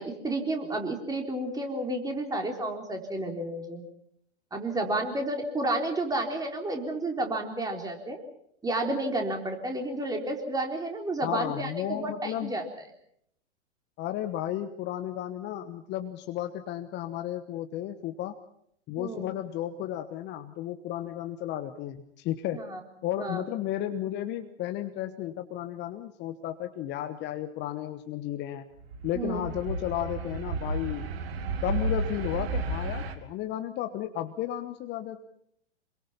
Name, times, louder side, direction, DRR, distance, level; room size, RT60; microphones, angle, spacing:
voice 1, 0.0-3.8 4.5-8.2 8.6-12.6 19.0-19.3 22.5-22.8 23.2-23.4 29.1-29.4, right 2 dB, 10° right, 3 dB, 4.0 m, -31 dB
voice 2, 11.2-12.5 14.0-18.4 18.9-22.7 23.0-28.6 29.0-31.1 31.6-35.2, left 12 dB, 30° left, 8 dB, 1.3 m, -33 dB
sound 1, 28.8-33.1, right 2 dB, 60° right, 2.7 m, -32 dB
26.5 x 23.0 x 5.8 m, 0.71 s
figure-of-eight pair, 110°, 35 cm